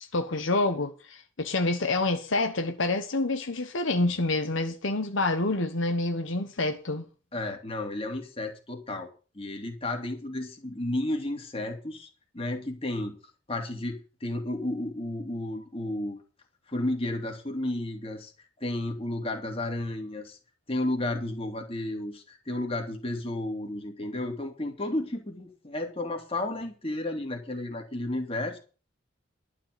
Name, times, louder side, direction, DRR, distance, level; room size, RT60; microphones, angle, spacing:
voice 1, 0.1-7.0, left 2 dB, 70° left, 1.2 m, -27 dB
voice 2, 7.3-9.1 9.3-12.1 12.3-13.2 13.5-16.2 16.7-18.3 18.6-20.4 20.7-28.6, left 1 dB, 30° left, 2.6 m, -32 dB
12.0 x 5.8 x 9.1 m
head